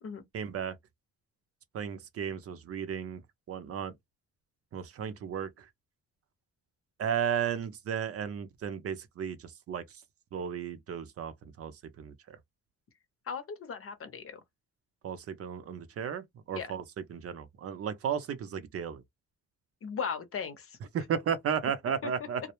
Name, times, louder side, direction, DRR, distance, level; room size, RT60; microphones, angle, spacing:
voice 1, 0.3-0.8 1.7-3.2 3.5-3.9 4.7-5.5 7.0-9.8 10.3-11.3 11.6-11.7 12.0-12.4 15.0-16.8 17.1-19.0 20.9-22.4, right 8 dB, 50° right, 0.5 m, -34 dB
voice 2, 13.3-14.4 16.5-16.7 19.8-20.8 22.0-22.1, left 6 dB, 50° left, 0.8 m, -37 dB
2.1 x 2.0 x 2.9 m
cardioid pair, 90°, 30 cm